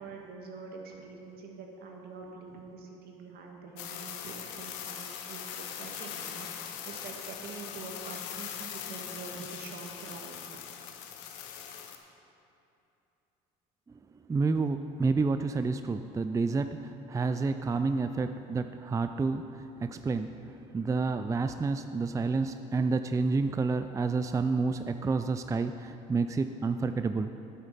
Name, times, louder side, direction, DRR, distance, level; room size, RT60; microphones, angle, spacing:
voice 1, 0.0-10.5, right 4 dB, 65° right, 1 dB, 1.7 m, -45 dB
sound 1, 3.8-12.0, left 9 dB, 80° left, 0.8 m, -41 dB
voice 2, 14.3-27.3, right 4 dB, 20° right, 9 dB, 0.4 m, -29 dB
9.4 x 8.0 x 5.7 m, 2.8 s
supercardioid pair, 65°, 17 cm